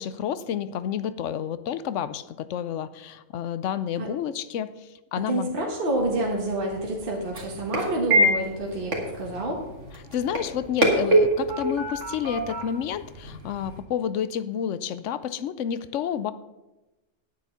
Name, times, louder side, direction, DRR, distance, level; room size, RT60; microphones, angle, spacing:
voice 1, 0.0-4.7 5.1-5.5 10.1-16.3, left 9 dB, 75° left, 14 dB, 0.9 m, -30 dB
voice 2, 5.3-9.6, right 1 dB, 45° right, 0 dB, 1.7 m, -28 dB
sound 1, 5.9-13.8, right 1 dB, 65° right, 2.4 m, -27 dB
9.9 x 9.0 x 5.7 m, 1.0 s
omnidirectional pair, 1.3 m